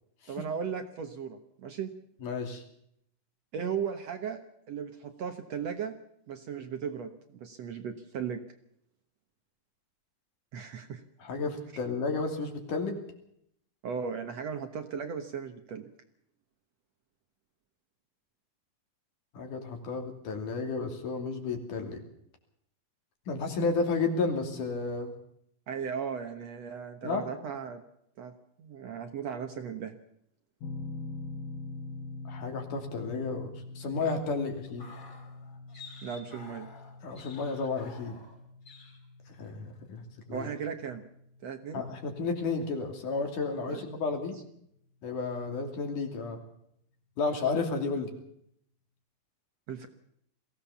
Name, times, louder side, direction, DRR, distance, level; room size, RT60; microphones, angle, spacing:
voice 1, 0.3-1.9 3.5-4.4 4.7-5.9 6.3-8.4 10.5-11.0 13.8-15.9 25.7-27.8 28.2-28.3 28.6-29.9 36.0-36.7 40.3-41.0 41.4-41.8 43.7-43.9 49.7-49.9, right 7 dB, 60° right, 7 dB, 2.0 m, -36 dB
voice 2, 2.2-2.6 11.2-13.0 19.3-22.0 23.3-25.1 27.0-27.2 32.3-34.9 37.0-38.2 39.4-40.5 41.7-44.4 45.0-46.4 47.2-48.1, left 4 dB, 65° left, 4 dB, 4.3 m, -32 dB
sound 1, 30.6-43.5, left 3 dB, 80° left, 2.6 m, -45 dB
sound 2, 34.6-38.4 38.6-39.0 39.3-39.6, left 4 dB, 40° left, 5.0 m, -51 dB
22.5 x 16.5 x 7.1 m, 0.72 s
omnidirectional pair, 4.0 m